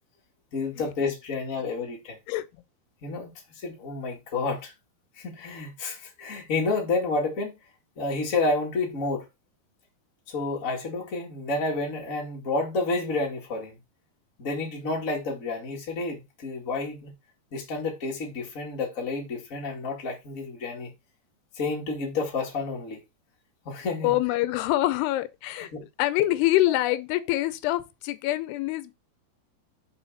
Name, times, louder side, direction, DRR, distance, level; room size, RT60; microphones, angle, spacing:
voice 1, 0.5-2.2 3.0-3.3 3.6-4.7 5.2-7.5 8.0-9.2 10.3-13.8 14.4-17.1 17.5-20.9 21.5-23.0 23.6-24.2 25.5-25.8, left 3 dB, 35° left, 1.4 m, -30 dB
voice 2, 24.0-25.7 26.0-28.9, left 16 dB, 85° left, 2.6 m, -25 dB
5.6 x 5.5 x 4.0 m
omnidirectional pair, 4.7 m